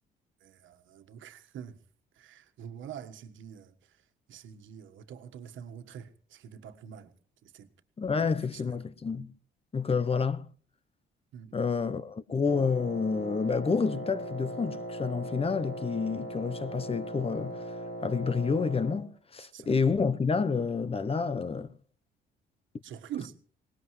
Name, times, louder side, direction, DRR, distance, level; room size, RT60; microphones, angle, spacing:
voice 1, 0.4-1.8 2.2-3.7 4.3-7.1 7.4-7.7 8.5-8.8 11.3-11.5 19.4-19.7 22.8-23.3, right 9 dB, 75° right, 1.5 m, -45 dB
voice 2, 8.0-9.3 9.7-10.5 11.5-17.6 18.0-21.7, left 5 dB, 30° left, 0.8 m, -29 dB
Wind instrument woodwind instrument, 12.4-19.1, right 1 dB, 50° left, 4.1 m, -39 dB
22.0 x 19.5 x 3.2 m
cardioid pair, 90°, 20 cm